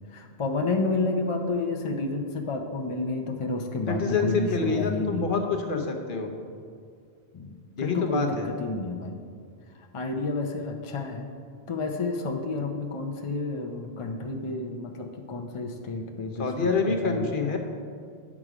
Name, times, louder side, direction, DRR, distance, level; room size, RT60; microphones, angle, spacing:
voice 1, 0.1-5.3 7.3-9.2 9.9-11.3 11.7-16.7 17.0-17.6, left 3 dB, 40° left, 3 dB, 0.5 m, -30 dB
voice 2, 3.9-6.3 7.8-8.5 16.4-17.6, left 4 dB, 55° left, 3 dB, 1.0 m, -26 dB
9.5 x 6.1 x 4.9 m, 2.2 s
omnidirectional pair, 1.1 m